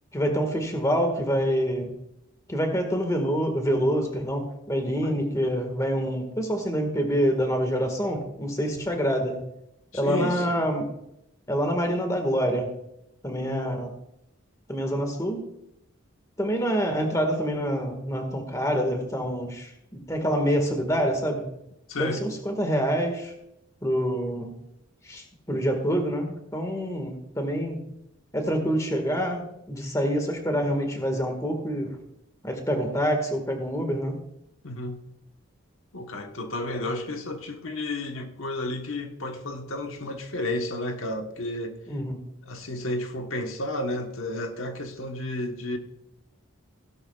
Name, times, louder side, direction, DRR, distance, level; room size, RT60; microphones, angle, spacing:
voice 1, 0.1-2.0 2.5-9.4 9.9-10.9 11.5-12.8 13.2-13.9 14.7-15.5 16.4-21.5 22.0-23.3 23.8-24.6 25.0-27.9 28.3-32.0 32.4-34.2 41.9-42.2, equal, 15° left, 1.6 m, -26 dB
voice 2, 10.0-10.6 13.4-13.8 21.9-22.2 34.6-35.0 35.9-41.7 42.5-45.8, left 1 dB, 80° left, 1.2 m, -32 dB
16.5 x 11.0 x 2.4 m
head